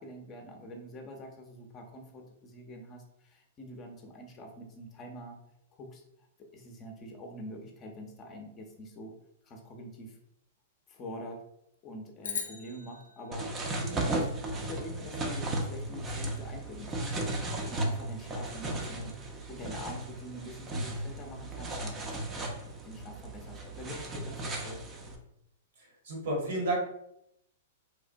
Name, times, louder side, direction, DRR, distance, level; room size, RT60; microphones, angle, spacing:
voice 1, 0.0-5.4 5.7-6.0 6.5-9.1 9.4-10.2 10.9-11.4 11.8-14.3 14.6-17.2 17.6-19.1 19.5-22.3 22.8-24.8, equal, 30° left, 2 dB, 0.6 m, -45 dB
sound 1, 12.2-14.7, left 6 dB, 90° left, 0.6 m, -41 dB
sound 2, 13.3-25.2, right 2 dB, 25° right, 0.5 m, -35 dB
voice 2, 26.0-26.8, right 1 dB, 70° right, -1 dB, 1.1 m, -30 dB
3.1 x 2.1 x 2.6 m, 0.76 s
hypercardioid pair, 120°, 0 cm